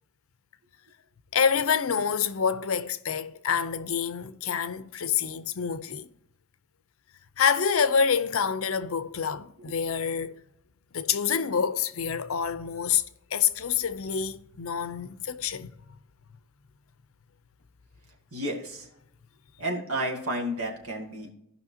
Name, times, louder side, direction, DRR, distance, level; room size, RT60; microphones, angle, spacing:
voice 1, 1.3-6.1 7.4-10.4 10.9-13.0 13.3-15.8, left 7 dB, 65° left, 0.6 m, -27 dB
voice 2, 18.3-18.9 19.6-21.3, right 1 dB, 75° right, 2.0 m, -31 dB
16.5 x 5.7 x 2.8 m
head